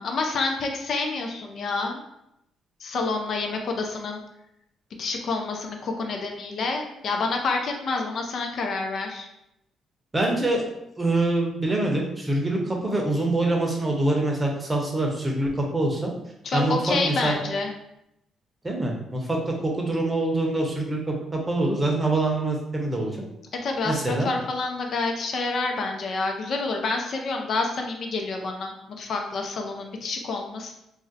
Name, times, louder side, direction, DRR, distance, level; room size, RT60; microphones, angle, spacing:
voice 1, 0.0-2.0 2.8-4.2 5.0-9.3 16.4-17.7 23.6-30.7, left 3 dB, 60° left, 3 dB, 0.4 m, -28 dB
voice 2, 10.1-10.6 11.0-16.1 16.5-17.4 18.6-19.4 19.6-23.2 23.8-24.3, right 2 dB, 20° right, 0 dB, 0.7 m, -25 dB
2.5 x 2.0 x 3.9 m, 0.83 s
cardioid pair, 90°, 0 cm